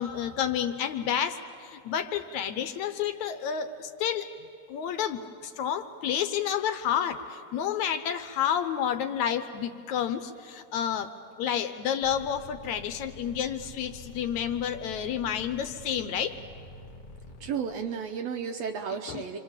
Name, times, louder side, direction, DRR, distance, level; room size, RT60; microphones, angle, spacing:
voice 1, 0.0-4.3 4.7-11.1 11.4-16.4 19.1-19.2, left 9 dB, 75° left, 8 dB, 2.0 m, -30 dB
sound 1, 12.0-17.5, left 2 dB, 35° left, 2.1 m, -47 dB
voice 2, 17.4-19.4, right 6 dB, 70° right, 4 dB, 1.7 m, -33 dB
29.0 x 24.5 x 7.3 m, 2.3 s
omnidirectional pair, 3.7 m